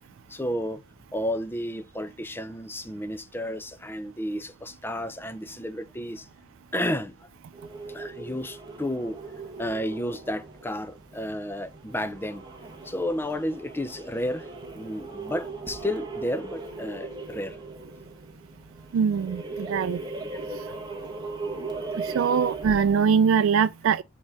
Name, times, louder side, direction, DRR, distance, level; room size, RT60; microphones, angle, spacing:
voice 1, 0.3-0.8 1.1-6.3 6.7-7.1 7.9-9.2 9.6-12.4 12.8-14.5 14.7-17.6, left 1 dB, 10° left, 0.5 m, -32 dB
sound 1, 7.5-23.2, right 3 dB, 20° right, 1.5 m, -38 dB
voice 2, 18.9-20.0 22.0-24.0, right 6 dB, 85° right, 0.3 m, -22 dB
6.3 x 3.7 x 6.2 m
head